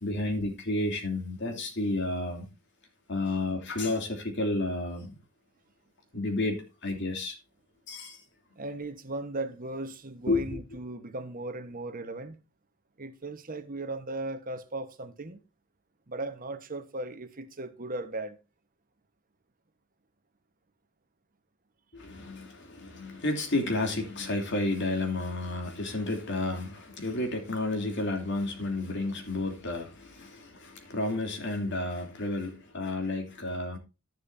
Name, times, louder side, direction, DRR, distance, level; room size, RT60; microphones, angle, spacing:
voice 1, 0.0-2.5 3.1-5.2 6.1-7.3 7.9-8.2 10.3-10.4 21.9-33.8, left 2 dB, 55° left, 2.9 m, -31 dB
voice 2, 8.5-12.4 13.0-15.4 16.1-18.4, right 2 dB, 40° right, 1.2 m, -37 dB
11.5 x 11.0 x 2.7 m
head